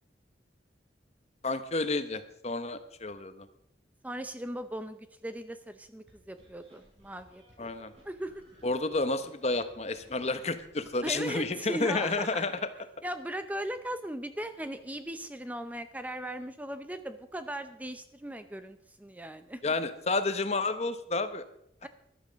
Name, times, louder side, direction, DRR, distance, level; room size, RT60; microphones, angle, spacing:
voice 1, 1.4-3.5 7.6-7.9 8.6-12.6 19.6-21.4, left 3 dB, 35° left, 11 dB, 0.9 m, -30 dB
voice 2, 4.0-7.7 8.0-8.3 11.0-12.6 13.0-19.6 21.8-21.9, right 1 dB, 10° right, 10 dB, 0.6 m, -38 dB
sound 1, 6.1-11.1, equal, 35° right, 6.8 m, -60 dB
14.0 x 11.5 x 5.1 m, 0.74 s
head